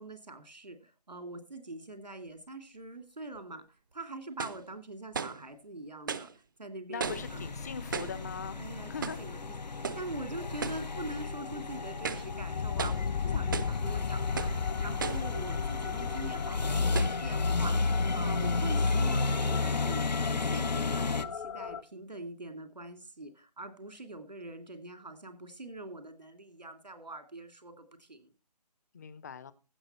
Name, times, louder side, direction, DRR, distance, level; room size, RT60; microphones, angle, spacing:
voice 1, 0.0-7.5 8.6-8.9 9.2-14.5 14.8-28.3, right 2 dB, 85° right, 8 dB, 2.6 m, -44 dB
sound 1, 3.4-3.5 4.4-4.7 5.1-5.4 6.1-6.3 7.0-7.4 7.9-8.2 9.0-9.3 9.8-10.1 10.6-10.9 11.3-11.4 11.9-12.3 12.8-13.1 13.5-13.8 14.4-14.6 15.0-15.3 16.0-16.1 16.9-17.2, right 6 dB, 30° right, 0.5 m, -36 dB
voice 2, 6.9-8.6 8.9-9.2 28.9-29.5, left 6 dB, 25° left, 17 dB, 0.5 m, -40 dB
sound 2, 7.0-21.2, left 3 dB, 85° left, 0.8 m, -33 dB
sound 3, 8.7-21.8, left 6 dB, 50° left, 0.9 m, -37 dB
15.5 x 6.5 x 4.3 m, 0.32 s
figure-of-eight pair, 150°, 21 cm